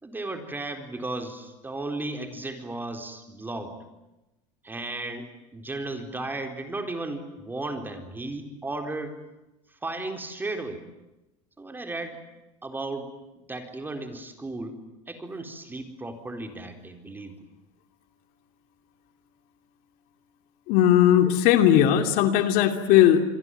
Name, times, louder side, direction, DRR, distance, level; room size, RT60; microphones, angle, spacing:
voice 1, 0.0-3.8 4.6-9.2 9.8-10.8 11.6-12.2 12.6-14.8 15.1-17.3, right 2 dB, 10° right, 5 dB, 4.2 m, -35 dB
voice 2, 20.7-23.2, left 11 dB, 60° left, 7 dB, 2.8 m, -18 dB
27.5 x 22.5 x 9.3 m, 0.99 s
supercardioid pair, 120°, 17 cm